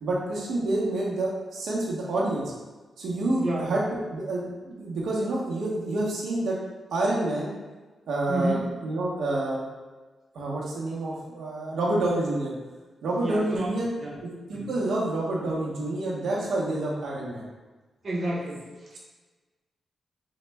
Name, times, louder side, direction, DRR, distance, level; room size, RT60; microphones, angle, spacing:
voice 1, 0.0-2.4 3.0-3.8 4.1-6.6 6.9-7.5 8.1-9.6 10.3-12.5 13.0-13.9 14.2-17.5, right 2 dB, 85° right, -4 dB, 0.8 m, -28 dB
voice 2, 3.4-3.7 8.3-8.7 13.2-14.2 14.5-14.8 18.0-19.0, right 1 dB, 40° right, -4 dB, 0.6 m, -31 dB
3.8 x 2.1 x 3.3 m, 1.2 s
wide cardioid pair, 145°, 0 cm